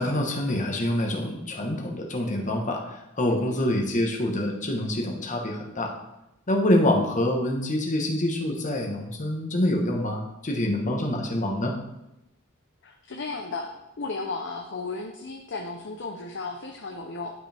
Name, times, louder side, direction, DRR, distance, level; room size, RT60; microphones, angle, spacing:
voice 1, 0.0-2.8 3.2-5.9 6.5-11.7, left 1 dB, 35° left, 1 dB, 1.2 m, -26 dB
voice 2, 12.8-13.7 14.0-17.3, left 3 dB, 55° left, 2 dB, 0.7 m, -34 dB
11.5 x 5.3 x 3.5 m, 0.89 s
head